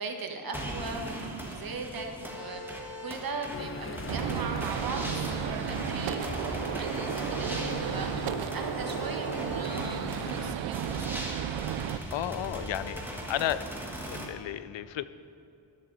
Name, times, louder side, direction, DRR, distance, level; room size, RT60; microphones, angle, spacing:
voice 1, 0.0-11.2, right 3 dB, 50° right, 3 dB, 1.5 m, -39 dB
sound 1, 0.5-14.3, right 1 dB, 5° right, 1.7 m, -39 dB
sound 2, 3.5-10.6, left 5 dB, 30° left, 0.6 m, -39 dB
Gunshot gunfire, 4.1-12.0, right 12 dB, 75° right, 0.5 m, -34 dB
voice 2, 12.1-13.7 14.1-15.1, left 12 dB, 75° left, 14 dB, 0.6 m, -33 dB
13.5 x 12.0 x 4.1 m, 2.7 s
wide cardioid pair, 125°, 45 cm